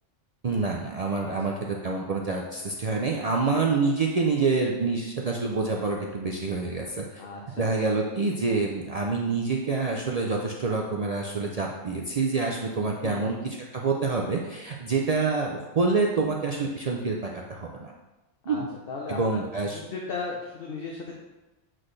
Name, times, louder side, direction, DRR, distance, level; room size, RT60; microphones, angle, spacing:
voice 1, 0.4-7.2 7.6-13.4 13.7-17.9 18.5-18.7 19.1-19.8, right 4 dB, 55° right, -1 dB, 0.4 m, -27 dB
voice 2, 1.2-1.5 7.2-7.7 13.0-13.3 18.5-18.6 18.9-21.1, left 4 dB, 55° left, -1 dB, 0.9 m, -36 dB
7.5 x 4.1 x 3.2 m, 1.1 s
omnidirectional pair, 1.3 m